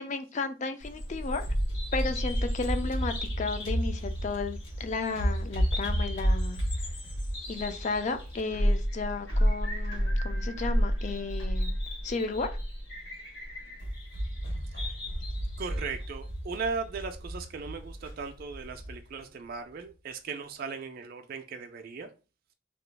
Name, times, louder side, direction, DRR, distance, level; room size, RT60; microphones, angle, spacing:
voice 1, 0.0-1.5 1.9-6.9 7.5-11.8 12.0-12.6, left 4 dB, 35° left, 0.3 m, -34 dB
Bird vocalization bird call bird song, 0.8-18.9, equal, 60° left, 1.1 m, -31 dB
voice 2, 15.6-22.1, right 4 dB, 45° right, 0.3 m, -37 dB
2.9 x 2.3 x 3.2 m
head